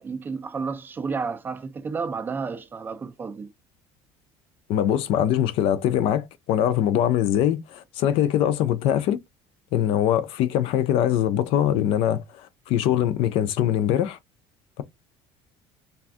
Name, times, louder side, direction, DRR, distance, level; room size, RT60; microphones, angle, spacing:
voice 1, 0.0-3.5, right 5 dB, 20° right, 0.4 m, -31 dB
voice 2, 4.7-9.2 9.7-12.2 12.7-14.2, left 11 dB, 60° left, 0.4 m, -22 dB
2.5 x 2.3 x 3.4 m
cardioid pair, 155°, 11 cm